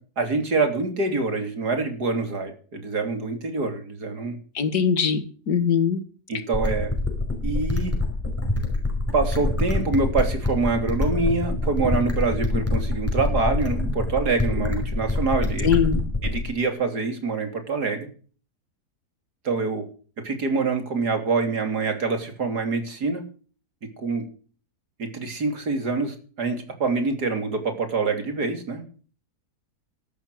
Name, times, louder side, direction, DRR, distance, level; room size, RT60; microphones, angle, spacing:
voice 1, 0.2-4.4 6.3-6.9 7.4-7.9 9.1-15.8 16.2-18.1 19.4-19.9 20.2-23.2 24.0-24.2 25.0-28.8, right 4 dB, 80° right, 7 dB, 3.7 m, -25 dB
voice 2, 4.6-6.0 15.6-16.0, left 7 dB, 90° left, 11 dB, 2.4 m, -21 dB
sound 1, 6.5-16.5, left 2 dB, 10° left, 4.9 m, -25 dB
13.5 x 12.0 x 6.2 m, 0.40 s
omnidirectional pair, 1.7 m